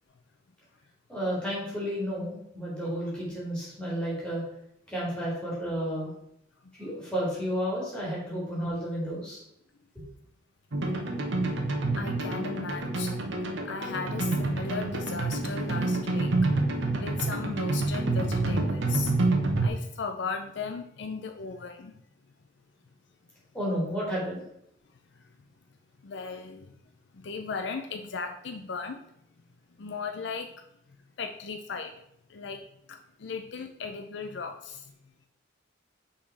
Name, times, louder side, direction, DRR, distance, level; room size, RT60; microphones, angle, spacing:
voice 1, 1.1-4.4 4.9-6.1 6.8-9.4 23.5-24.4, equal, 5° left, -6 dB, 2.8 m, -31 dB
sound 1, 10.7-19.7, right 2 dB, 75° right, 1.1 m, -28 dB
voice 2, 11.9-13.3 13.6-16.5 17.0-19.1 19.6-22.0 26.0-26.7 27.1-29.0 29.8-30.5 31.2-31.9 32.3-32.6 32.9-34.9, left 5 dB, 65° left, 5 dB, 0.5 m, -36 dB
5.8 x 4.3 x 4.7 m, 0.75 s
head